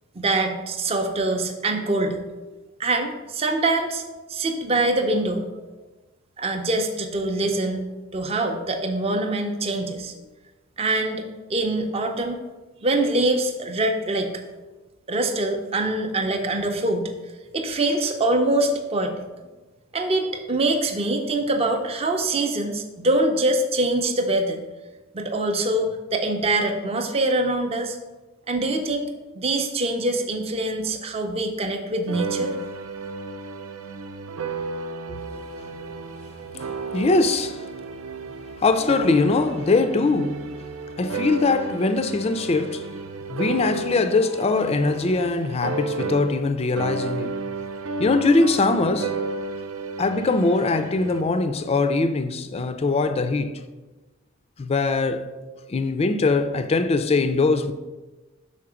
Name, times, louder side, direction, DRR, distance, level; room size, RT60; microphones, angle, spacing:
voice 1, 0.2-2.2 2.8-4.0 4.3-5.5 6.4-7.8 8.1-10.2 10.8-12.4 12.8-14.3 15.1-17.1 17.5-19.2 19.9-24.6 25.1-28.0 28.5-29.1 29.4-32.5, right 2 dB, 30° right, 0.5 m, -24 dB
sound 1, 32.1-46.5 46.8-51.2, right 3 dB, 90° right, 0.5 m, -32 dB
voice 2, 36.5-37.7 38.6-40.5 41.0-42.9 43.3-47.3 48.0-49.2 50.0-53.6 54.6-55.3 55.7-57.7, left 3 dB, 30° left, 0.3 m, -22 dB
5.7 x 4.4 x 4.9 m
head